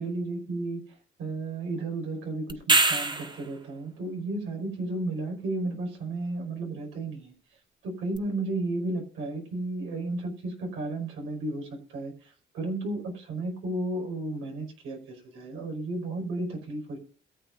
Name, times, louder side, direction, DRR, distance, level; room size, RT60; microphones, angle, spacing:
voice 1, 0.0-7.3 7.8-17.0, right 2 dB, 90° right, 2 dB, 5.2 m, -33 dB
sound 1, 2.5-3.5 8.1-8.2, right 3 dB, 25° right, 1.5 m, -23 dB
22.0 x 8.2 x 2.6 m, 0.41 s
cardioid pair, 90°, 20 cm